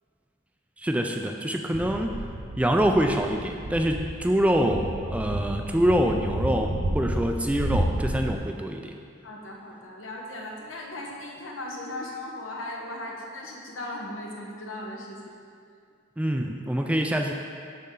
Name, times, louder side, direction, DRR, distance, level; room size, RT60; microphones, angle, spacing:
voice 1, 0.8-2.2 2.6-9.0 16.2-17.3, equal, 5° right, 3 dB, 0.3 m, -25 dB
sound 1, 1.7-8.4, right 1 dB, 60° right, 0.7 m, -31 dB
voice 2, 9.2-15.4, left 1 dB, 80° left, -1 dB, 1.1 m, -37 dB
11.0 x 4.3 x 3.8 m, 2.3 s
head